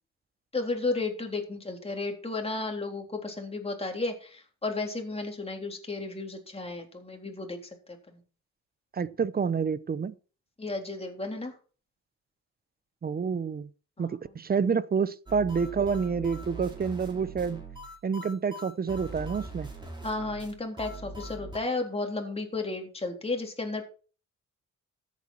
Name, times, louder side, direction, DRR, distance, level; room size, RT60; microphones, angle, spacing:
voice 1, 0.5-7.6 7.9-8.2 10.6-11.5 14.0-14.2 20.0-23.8, left 3 dB, 20° left, 3.7 m, -33 dB
voice 2, 8.9-10.1 13.0-13.7 14.0-17.6 18.0-19.7, right 6 dB, 30° right, 0.8 m, -28 dB
sound 1, 15.3-21.6, right 1 dB, 15° right, 4.5 m, -42 dB
14.0 x 8.5 x 4.5 m
cardioid pair, 90°, 30 cm